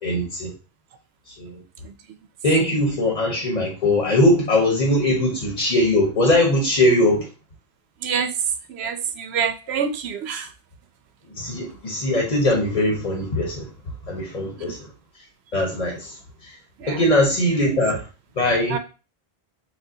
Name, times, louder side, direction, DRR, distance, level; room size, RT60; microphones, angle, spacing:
voice 1, 0.0-0.5 1.4-1.6 2.4-7.3 11.4-13.7 14.1-14.9 15.5-16.1 16.4-16.5 16.9-18.0 18.4-18.8, left 1 dB, 45° left, 0 dB, 0.9 m, -20 dB
voice 2, 8.8-10.4 18.7-18.8, right 6 dB, 85° right, 8 dB, 0.9 m, -25 dB
6.1 x 2.2 x 2.7 m, 0.32 s
omnidirectional pair, 1.0 m